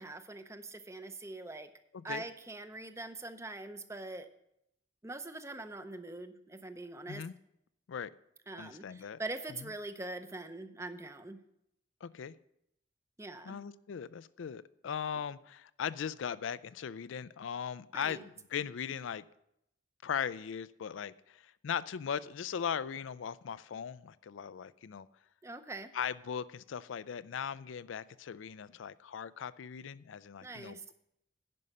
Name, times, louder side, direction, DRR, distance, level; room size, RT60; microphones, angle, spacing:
voice 1, 0.0-1.7 2.0-4.3 5.0-7.2 8.5-11.4 13.2-13.6 17.9-18.2 25.4-25.9 30.4-30.8, right 2 dB, 15° right, 10 dB, 0.6 m, -43 dB
voice 2, 8.6-9.2 9.6-9.7 12.0-12.4 13.4-19.2 20.0-25.1 25.9-30.9, left 7 dB, 90° left, 17 dB, 0.4 m, -39 dB
10.5 x 5.5 x 6.5 m, 0.79 s
head